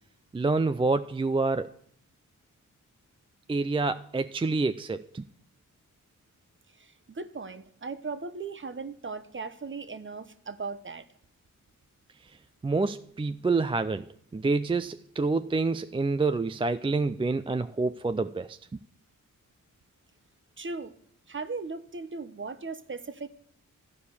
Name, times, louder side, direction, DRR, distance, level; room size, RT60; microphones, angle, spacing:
voice 1, 0.3-1.7 3.5-5.2 12.6-14.0 14.3-18.6, right 3 dB, 15° right, 10 dB, 0.4 m, -27 dB
voice 2, 6.7-11.1 20.6-20.9 21.3-23.3, right 4 dB, 35° right, 11 dB, 0.9 m, -38 dB
13.0 x 4.9 x 6.9 m, 0.67 s
cardioid pair, 60°, 34 cm